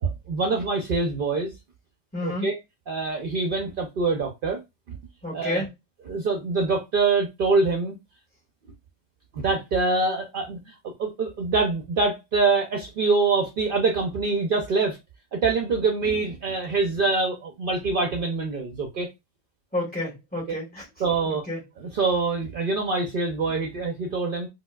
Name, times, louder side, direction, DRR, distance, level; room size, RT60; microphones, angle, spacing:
voice 1, 0.0-1.5 2.2-2.6 2.9-4.6 4.9-5.0 5.3-5.6 6.1-7.9 9.3-15.0 15.3-19.1 21.0-21.4 21.8-24.5, right 3 dB, 60° right, 0.7 m, -25 dB
voice 2, 2.1-2.5 5.2-5.7 19.7-20.8 21.2-21.6, left 1 dB, 10° left, 1.7 m, -30 dB
4.3 x 2.2 x 2.2 m
omnidirectional pair, 1.1 m